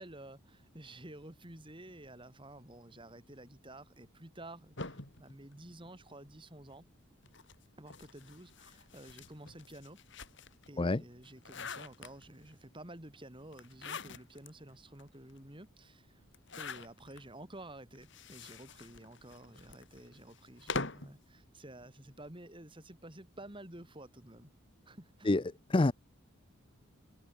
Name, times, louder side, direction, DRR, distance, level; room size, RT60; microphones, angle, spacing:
voice 1, 0.0-6.9 7.8-10.0 10.7-16.2 16.6-24.5 24.9-25.4, right 1 dB, 25° right, 3.7 m, -51 dB
sound 1, 4.8-6.4 7.2-10.7 11.1-12.5 13.5-14.5 15.0-15.1 15.3-15.4 16.3-17.2 18.0-21.2, left 4 dB, 60° left, 3.6 m, -44 dB
voice 2, 10.8-11.0 25.3-25.4 25.7-25.9, left 2 dB, 25° left, 0.5 m, -26 dB
head